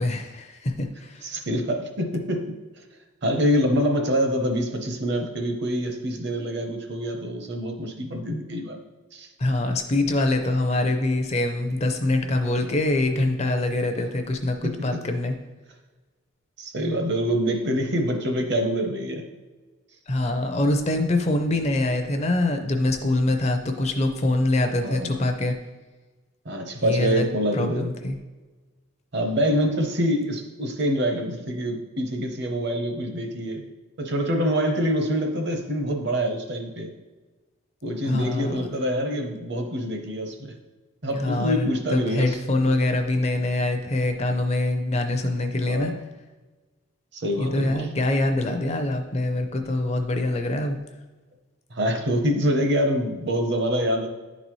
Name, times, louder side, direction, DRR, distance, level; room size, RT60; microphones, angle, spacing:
voice 1, 0.0-1.3 9.4-15.3 20.1-25.6 26.8-28.2 38.0-38.7 41.1-45.9 47.4-50.8, left 2 dB, 30° left, 6 dB, 0.5 m, -24 dB
voice 2, 1.2-2.5 3.2-8.8 9.1-9.3 14.0-14.1 14.6-14.7 16.6-19.2 24.8-25.1 26.4-27.9 29.1-33.6 34.0-36.9 37.8-40.5 41.0-42.4 45.7-46.0 47.1-47.9 51.7-54.1, equal, 50° right, 5 dB, 0.8 m, -25 dB
10.5 x 4.1 x 3.1 m, 1.2 s
head